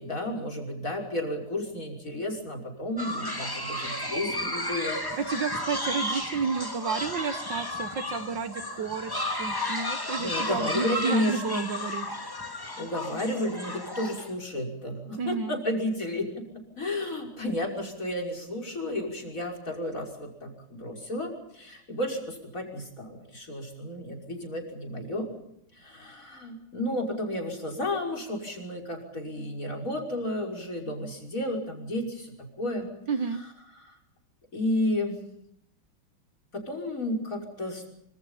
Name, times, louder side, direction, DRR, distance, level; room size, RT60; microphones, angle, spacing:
voice 1, 0.0-5.2 10.2-11.7 12.8-16.4 16.8-25.3 25.7-32.9 33.8-34.0 34.5-35.2 36.5-37.8, left 1 dB, 35° left, 5 dB, 6.2 m, -32 dB
sound 1, 3.0-14.3, left 1 dB, 10° left, 2.1 m, -33 dB
voice 2, 5.2-12.1 15.2-15.6 33.1-33.4, right 5 dB, 60° right, 9 dB, 1.7 m, -31 dB
27.0 x 26.0 x 5.7 m, 0.76 s
omnidirectional pair, 2.4 m